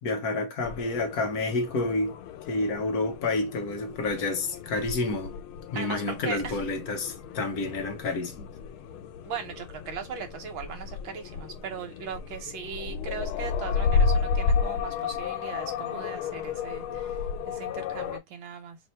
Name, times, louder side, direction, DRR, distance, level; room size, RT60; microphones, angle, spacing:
voice 1, 0.0-2.2 2.4-5.4 5.7-8.5 16.9-17.0, left 2 dB, 60° left, 1.1 m, -29 dB
sound 1, 0.6-18.2, left 5 dB, 85° left, 1.5 m, -32 dB
voice 2, 5.7-6.6 9.3-18.8, right 6 dB, 75° right, 1.6 m, -39 dB
3.2 x 2.7 x 4.2 m
omnidirectional pair, 2.2 m